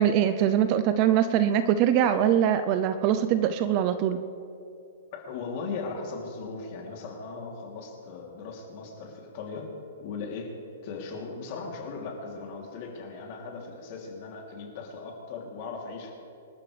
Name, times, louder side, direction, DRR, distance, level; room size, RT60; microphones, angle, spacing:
voice 1, 0.0-4.2, right 10 dB, 30° right, 11 dB, 0.5 m, -23 dB
voice 2, 5.1-9.7 10.0-10.5 10.8-16.1, left 4 dB, 35° left, -1 dB, 3.0 m, -38 dB
26.5 x 12.5 x 3.3 m, 2.7 s
hypercardioid pair, 165°, 0 cm